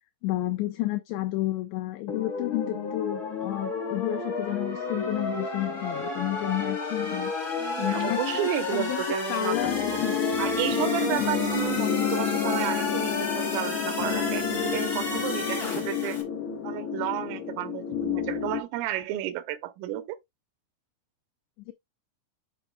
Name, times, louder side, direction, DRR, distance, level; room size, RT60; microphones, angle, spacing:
voice 1, 0.2-7.3 7.8-9.0 9.3-10.2 10.8-11.2 21.7-21.8, left 15 dB, 90° left, 2.4 m, -31 dB
sound 1, 2.1-16.2, left 3 dB, 45° left, 1.2 m, -32 dB
voice 2, 7.6-9.7 10.4-16.2 16.6-20.2, right 14 dB, 90° right, 3.4 m, -32 dB
sound 2, 9.5-18.6, left 8 dB, 70° left, 3.2 m, -29 dB
12.0 x 4.7 x 2.2 m
omnidirectional pair, 5.6 m